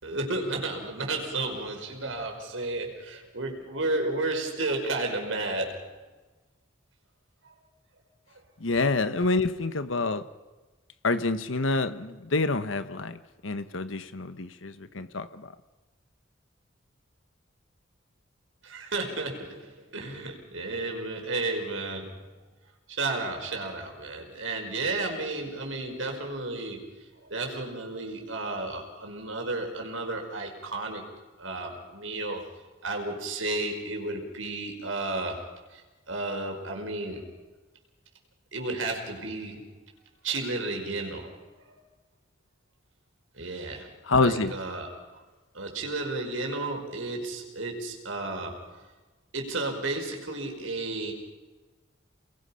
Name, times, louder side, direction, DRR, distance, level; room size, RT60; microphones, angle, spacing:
voice 1, 0.0-6.0 18.6-22.3 22.9-31.0 31.4-32.4 32.8-37.3 38.5-39.8 40.2-41.4 43.3-43.9 44.2-45.2 45.5-48.6 49.3-51.1, right 2 dB, 85° right, 2 dB, 5.3 m, -33 dB
voice 2, 8.6-10.2 11.0-15.5 44.0-44.5, left 3 dB, 90° left, 11 dB, 1.2 m, -27 dB
29.5 x 21.5 x 5.8 m, 1.2 s
head